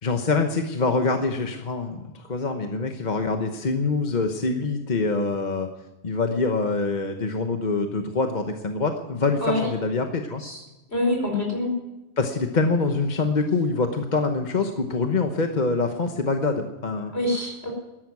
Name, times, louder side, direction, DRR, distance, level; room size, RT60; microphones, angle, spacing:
voice 1, 0.0-5.7 6.0-10.4 12.2-17.1, left 3 dB, 45° left, 5 dB, 1.2 m, -25 dB
voice 2, 10.9-11.7 17.1-17.7, left 1 dB, 70° left, 1 dB, 5.3 m, -25 dB
13.5 x 11.0 x 9.5 m, 1.0 s
omnidirectional pair, 1.1 m